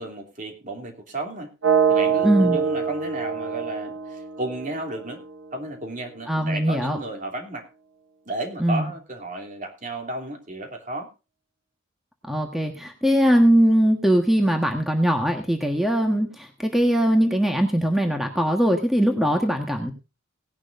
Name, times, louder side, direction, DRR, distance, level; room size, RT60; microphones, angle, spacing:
voice 1, 0.0-1.5 1.9-5.2 5.5-7.7 8.2-11.1, right 1 dB, 40° right, 3 dB, 2.9 m, -33 dB
sound 1, 1.6-5.6, right 7 dB, 80° right, 1.1 m, -25 dB
voice 2, 2.2-2.6 6.3-7.0 8.6-8.9 12.3-19.9, equal, ahead, 3 dB, 1.4 m, -21 dB
18.5 x 11.0 x 2.6 m, 0.30 s
head